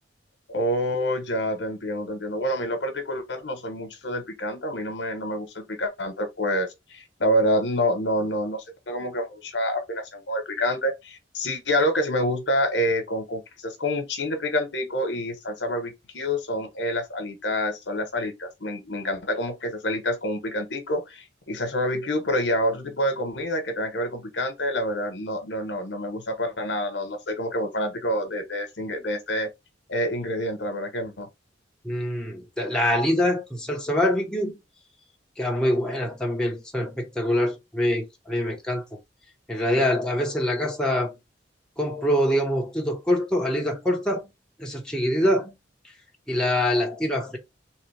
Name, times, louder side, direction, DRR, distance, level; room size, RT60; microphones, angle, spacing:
voice 1, 0.5-29.5 29.9-31.3, equal, 75° left, 1.2 m, -27 dB
voice 2, 31.8-34.6 35.4-38.8 39.5-41.2 41.8-44.3 44.6-45.5 46.3-47.4, left 1 dB, 5° left, 1.1 m, -24 dB
3.7 x 3.1 x 3.4 m
head